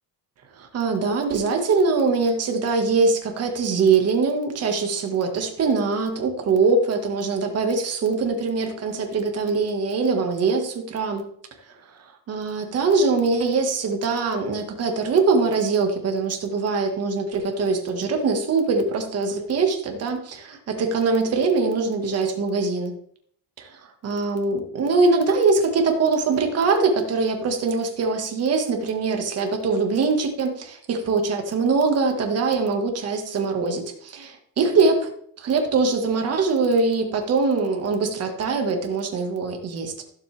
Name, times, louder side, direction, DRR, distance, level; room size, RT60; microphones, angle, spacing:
voice 1, 0.6-11.2 12.3-23.0 23.6-34.3 34.6-35.1 35.4-39.9, right 4 dB, 40° right, 4 dB, 1.8 m, -22 dB
15.0 x 7.6 x 3.5 m, 0.64 s
cardioid pair, 180°, 39 cm